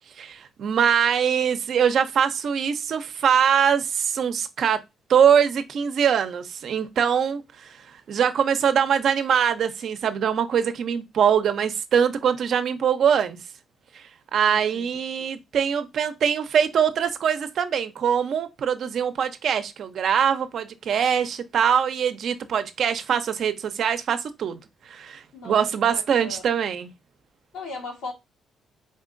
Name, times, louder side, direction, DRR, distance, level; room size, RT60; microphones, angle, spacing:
voice 1, 0.2-4.8 5.1-13.4 13.9-24.6 24.9-26.9, right 8 dB, 65° right, 0.6 m, -23 dB
voice 2, 14.5-14.9 25.3-25.6 25.9-26.4 27.5-28.1, left 3 dB, 90° left, 2.3 m, -37 dB
3.8 x 3.6 x 2.5 m
cardioid pair, 90°, 0 cm